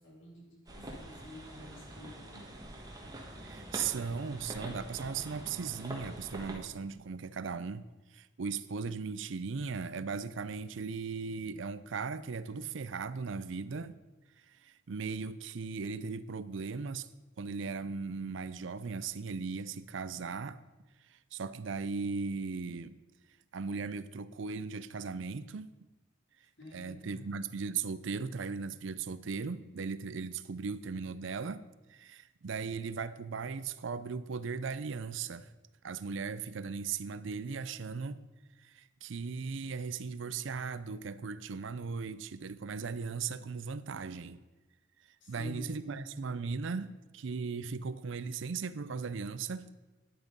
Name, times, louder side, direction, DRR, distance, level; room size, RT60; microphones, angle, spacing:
voice 1, 0.0-2.5 26.6-27.3 45.2-46.1, left 1 dB, 60° left, 3.1 m, -49 dB
rain inside a caravan, 0.7-6.6, right 1 dB, 20° right, 1.5 m, -45 dB
voice 2, 3.4-7.8 8.1-14.0 14.5-17.1 17.4-20.6 21.1-23.0 23.5-25.7 26.7-31.6 31.9-35.5 35.8-38.2 38.6-44.4 45.3-49.7, right 5 dB, 65° right, 0.5 m, -37 dB
11.0 x 8.0 x 5.3 m
head